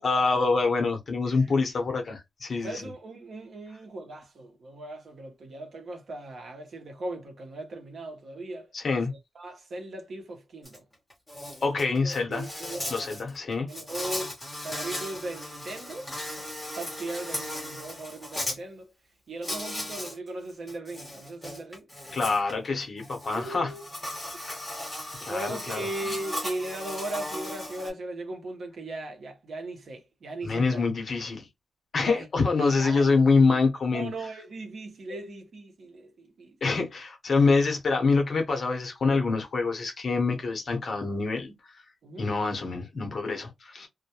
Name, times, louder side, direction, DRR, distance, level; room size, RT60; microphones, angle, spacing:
voice 1, 0.0-2.8 8.7-9.1 11.6-12.5 12.9-13.7 22.1-23.7 24.5-24.6 25.2-25.9 30.4-31.5 31.9-34.1 36.6-41.5 42.2-43.9, left 4 dB, 50° left, 0.7 m, -25 dB
voice 2, 2.6-8.7 9.1-10.8 11.8-12.9 13.7-14.4 14.6-16.1 16.7-18.9 19.3-21.9 23.3-24.6 25.3-30.8 32.0-32.3 32.6-33.2 33.9-36.6 42.0-42.3, right 2 dB, 65° right, 0.8 m, -38 dB
Insect, 10.6-10.8 11.1-18.6 19.4-20.2 20.5-27.9, left 1 dB, 10° left, 0.9 m, -37 dB
2.2 x 2.1 x 2.8 m
wide cardioid pair, 155°, 0 cm